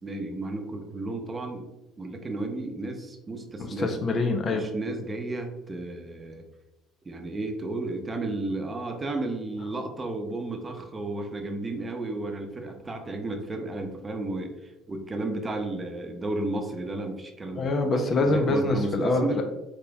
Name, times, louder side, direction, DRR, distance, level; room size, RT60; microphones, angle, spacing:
voice 1, 0.0-1.7 2.0-4.0 4.5-6.4 7.0-17.7 18.3-19.4, right 2 dB, 25° right, 4 dB, 0.7 m, -33 dB
voice 2, 3.6-4.7 17.5-19.4, left 2 dB, 45° left, 5 dB, 0.6 m, -25 dB
5.0 x 2.9 x 2.3 m, 0.99 s
hypercardioid pair, 65°, 0 cm